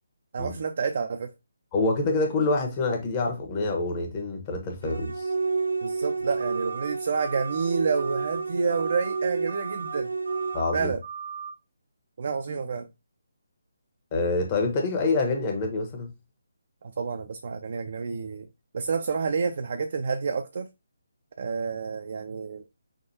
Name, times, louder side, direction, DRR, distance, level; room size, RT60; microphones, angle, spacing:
voice 1, 0.3-1.3 5.8-10.1 10.7-11.0 12.2-12.9 16.8-18.5 18.7-20.7 21.4-22.6, right 5 dB, 50° right, 0.5 m, -29 dB
voice 2, 1.7-5.3 10.5-10.9 14.1-16.1, left 3 dB, 25° left, 1.1 m, -26 dB
sound 1, 4.8-10.6, right 4 dB, 90° right, 0.8 m, -30 dB
sound 2, 6.4-6.9 7.2-7.6 7.9-8.4 8.7-9.2 9.5-10.0 10.2-10.7 11.0-11.5, right 7 dB, 70° right, 1.0 m, -37 dB
5.8 x 2.5 x 2.8 m
figure-of-eight pair, 150°, 0 cm